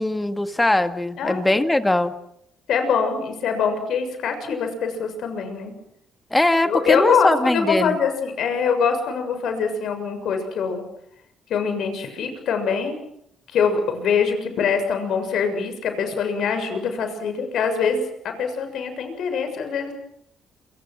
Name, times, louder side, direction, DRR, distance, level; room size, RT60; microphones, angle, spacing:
voice 1, 0.0-2.1 6.3-8.0, left 1 dB, 15° left, 9 dB, 1.9 m, -21 dB
voice 2, 1.2-1.6 2.7-5.7 6.6-10.9 11.5-13.0 13.5-19.9, left 6 dB, 75° left, 7 dB, 6.9 m, -24 dB
28.0 x 26.0 x 6.4 m, 0.76 s
cardioid pair, 85°, 0 cm